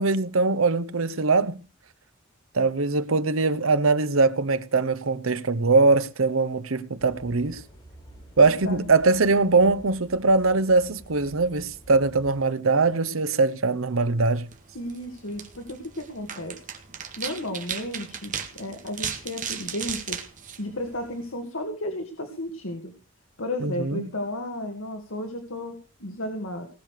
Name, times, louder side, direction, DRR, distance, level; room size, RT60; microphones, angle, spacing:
voice 1, 0.0-1.6 2.5-7.6 8.4-14.5 23.6-24.1, right 3 dB, 85° right, 0.9 m, -22 dB
sound 1, 7.0-12.4, equal, 25° left, 4.8 m, -49 dB
voice 2, 8.4-8.8 14.7-16.5 17.2-20.2 20.6-22.9 23.4-26.7, left 1 dB, 80° left, 2.2 m, -33 dB
sound 2, 14.4-21.3, right 7 dB, 40° right, 2.0 m, -36 dB
19.0 x 6.8 x 6.6 m
head